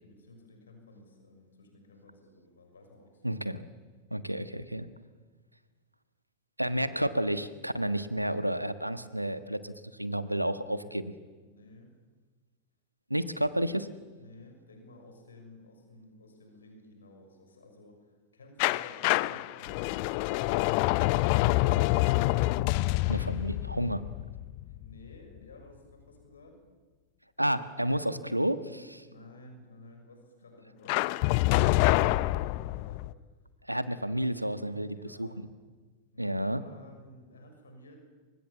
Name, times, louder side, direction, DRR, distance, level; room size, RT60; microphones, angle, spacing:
voice 1, 0.0-3.4 10.5-11.0 11.4-11.9 14.2-22.1 22.8-23.5 24.7-26.6 29.0-33.1 34.9-35.5 36.1-38.0, left 2 dB, 70° left, 5 dB, 6.2 m, -54 dB
voice 2, 3.2-3.6 4.1-4.9 6.6-11.0 13.1-13.9 23.1-24.1 27.4-29.0 33.7-35.3 36.2-36.6, right 1 dB, 90° right, 12 dB, 1.4 m, -31 dB
sound 1, 18.6-25.4 30.9-33.1, left 19 dB, 45° left, 0.7 m, -27 dB
28.0 x 25.0 x 7.4 m, 1.4 s
figure-of-eight pair, 90°, 0 cm